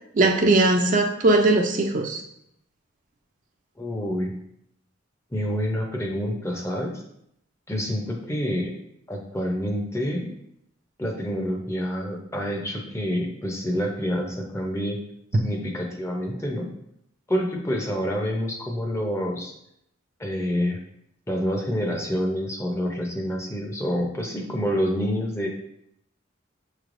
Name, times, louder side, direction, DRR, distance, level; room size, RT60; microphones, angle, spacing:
voice 1, 0.1-2.2, right 2 dB, 40° right, 3 dB, 0.4 m, -19 dB
voice 2, 3.8-4.4 5.3-6.9 7.7-8.7 9.1-10.3 11.0-15.0 15.3-16.6 17.3-19.5 20.2-20.8 21.3-25.5, equal, 15° left, 1 dB, 0.5 m, -27 dB
6.4 x 3.2 x 2.5 m, 0.76 s
head